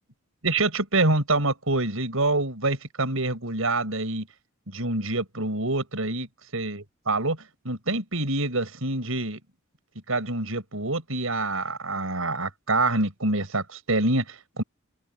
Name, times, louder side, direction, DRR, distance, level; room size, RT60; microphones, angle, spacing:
voice 1, 0.4-4.3 4.7-6.3 6.5-7.4 7.6-9.4 10.1-14.6, right 2 dB, 80° right, 5.5 m, -26 dB
open air
head